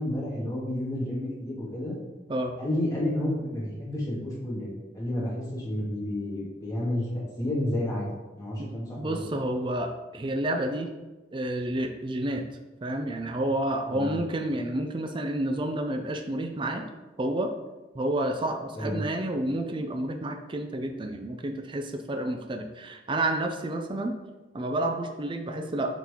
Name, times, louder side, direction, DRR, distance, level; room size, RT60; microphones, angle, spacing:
voice 1, 0.0-2.0 2.6-8.1 8.4-9.2 13.9-14.1 18.8-19.0, left 1 dB, 20° left, -6 dB, 2.0 m, -31 dB
voice 2, 9.0-10.9 11.3-12.4 12.8-16.9 17.2-17.5 17.9-24.2 24.5-26.0, right 1 dB, 25° right, 4 dB, 0.4 m, -30 dB
7.2 x 3.9 x 3.7 m, 1.1 s
head